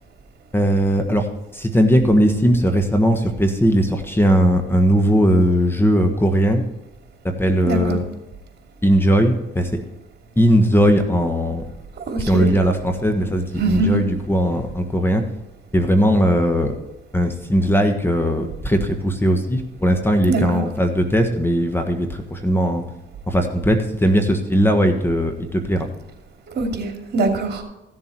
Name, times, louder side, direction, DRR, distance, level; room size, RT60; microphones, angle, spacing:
voice 1, 0.5-1.3 1.5-6.6 7.2-8.0 8.8-9.8 10.4-11.6 12.2-15.2 15.7-16.7 17.1-22.8 23.3-25.9, equal, 10° left, 5 dB, 1.4 m, -18 dB
voice 2, 7.6-8.0 12.1-12.5 13.6-14.0 20.3-20.6 26.5-27.6, right 3 dB, 55° right, 3 dB, 2.8 m, -22 dB
15.0 x 7.2 x 4.6 m, 0.96 s
cardioid pair, 90°, 20 cm